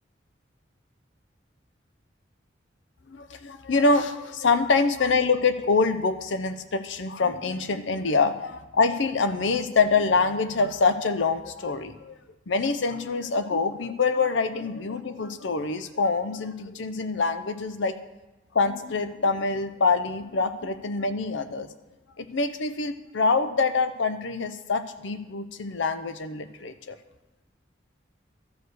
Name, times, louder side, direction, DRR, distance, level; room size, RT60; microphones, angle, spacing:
voice 1, 3.1-12.2 12.5-18.0 18.5-21.7 22.2-27.0, left 4 dB, 80° left, 11 dB, 0.6 m, -25 dB
13.0 x 4.7 x 6.4 m, 1.1 s
head